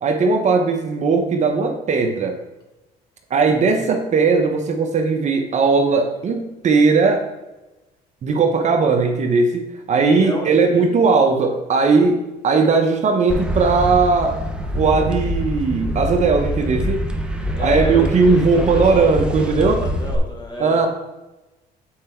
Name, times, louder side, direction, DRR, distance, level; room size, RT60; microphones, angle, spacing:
voice 1, 0.0-2.4 3.3-7.3 8.2-14.4 14.7-17.1 17.6-19.8 20.6-20.9, right 4 dB, 45° right, 4 dB, 0.9 m, -18 dB
voice 2, 10.2-10.9 17.4-20.9, left 1 dB, 25° left, -1 dB, 2.2 m, -30 dB
sound 1, 13.3-20.2, equal, 5° right, 0.8 m, -25 dB
7.4 x 4.7 x 4.4 m, 1.0 s
cardioid pair, 110°, 17 cm